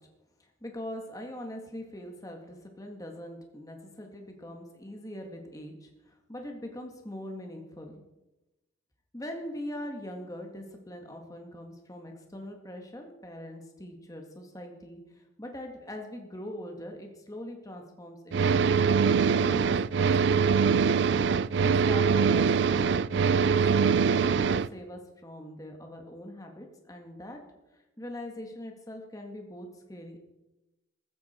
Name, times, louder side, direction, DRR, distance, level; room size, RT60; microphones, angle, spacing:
voice 1, 0.6-8.0 9.1-18.8 19.1-20.6 21.6-27.4 28.0-30.2, left 1 dB, 15° left, 2 dB, 1.9 m, -42 dB
sound 1, 18.3-24.7, right 6 dB, 60° right, 0.4 m, -23 dB
15.0 x 14.5 x 4.5 m, 0.98 s
head